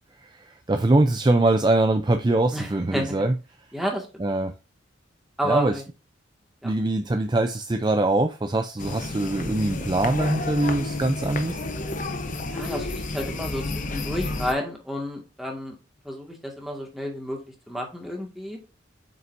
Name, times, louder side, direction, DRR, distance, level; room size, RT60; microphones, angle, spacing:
voice 1, 0.2-3.4 4.2-4.5 5.4-5.8 6.6-11.6, right 2 dB, 25° right, 0.5 m, -23 dB
voice 2, 2.5-3.2 3.7-4.1 5.4-5.8 6.6-6.7 12.5-15.7 16.0-17.4 17.7-18.6, equal, ahead, 1.9 m, -30 dB
sound 1, 8.8-14.5, left 2 dB, 40° left, 0.8 m, -31 dB
7.7 x 5.6 x 2.6 m
head